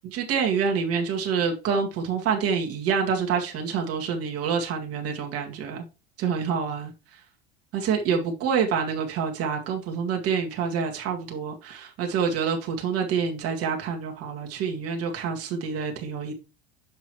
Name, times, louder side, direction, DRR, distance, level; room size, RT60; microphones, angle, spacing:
voice 1, 0.1-5.9 6.2-6.9 7.7-16.3, right 6 dB, 50° right, 1.9 m, -27 dB
6.6 x 6.3 x 3.1 m
hypercardioid pair, 85°, 30 cm